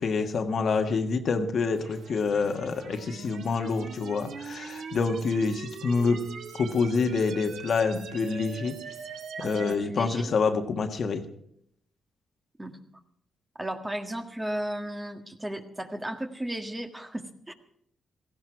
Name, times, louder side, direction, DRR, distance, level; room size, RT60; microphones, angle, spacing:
voice 1, 0.0-6.2 6.6-8.8 9.4-11.2, left 4 dB, 60° left, 5 dB, 1.5 m, -27 dB
sound 1, 1.7-9.7, right 6 dB, 75° right, 1.5 m, -41 dB
voice 2, 9.4-10.3 12.6-12.8 13.5-17.5, right 1 dB, 15° right, 5 dB, 1.7 m, -35 dB
17.0 x 15.0 x 4.7 m, 0.72 s
cardioid pair, 80°, 0 cm